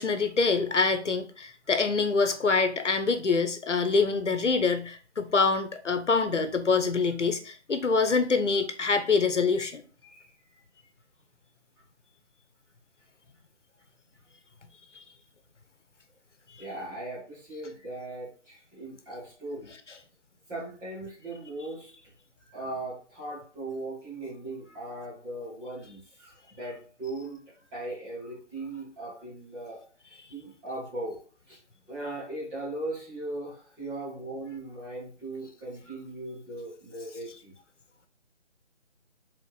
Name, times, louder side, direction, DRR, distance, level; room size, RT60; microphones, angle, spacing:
voice 1, 0.0-9.8 14.9-15.0 16.5-16.6, left 4 dB, 85° left, 9 dB, 1.0 m, -25 dB
voice 2, 16.6-19.7 20.5-21.9 22.4-27.4 27.7-31.2 31.5-31.6 31.9-37.5, right 2 dB, 10° right, -7 dB, 1.3 m, -38 dB
5.3 x 3.8 x 4.7 m, 0.41 s
figure-of-eight pair, 160°, 35 cm